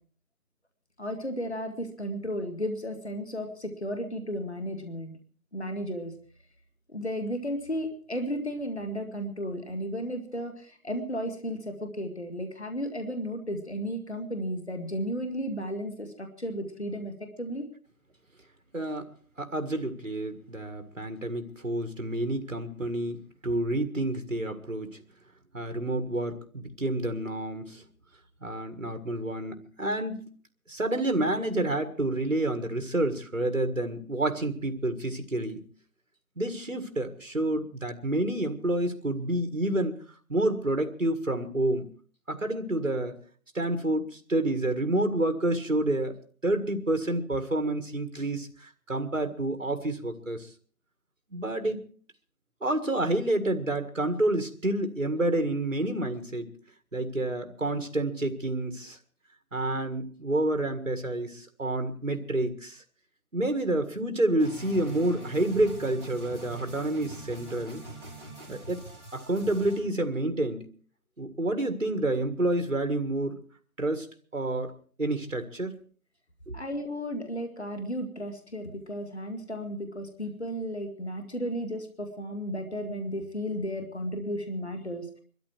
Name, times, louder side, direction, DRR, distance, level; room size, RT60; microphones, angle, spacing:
voice 1, 1.0-5.2 5.5-6.1 6.9-17.6 76.5-85.1, equal, 45° left, 5 dB, 2.1 m, -34 dB
voice 2, 18.7-19.1 19.4-25.0 25.5-27.8 28.4-30.3 30.7-35.6 36.4-40.0 40.3-41.9 42.3-43.2 43.5-46.1 46.4-50.5 51.3-51.8 52.6-56.6 56.9-59.0 59.5-62.8 63.3-67.8 68.5-68.9 69.1-70.7 71.2-73.4 73.8-74.1 74.3-74.7 75.0-75.8 76.5-76.6, right 1 dB, 55° right, 8 dB, 1.8 m, -29 dB
sound 1, 64.4-69.8, right 1 dB, 20° right, 4.7 m, -44 dB
22.0 x 13.0 x 4.5 m, 0.43 s
figure-of-eight pair, 175°, 44 cm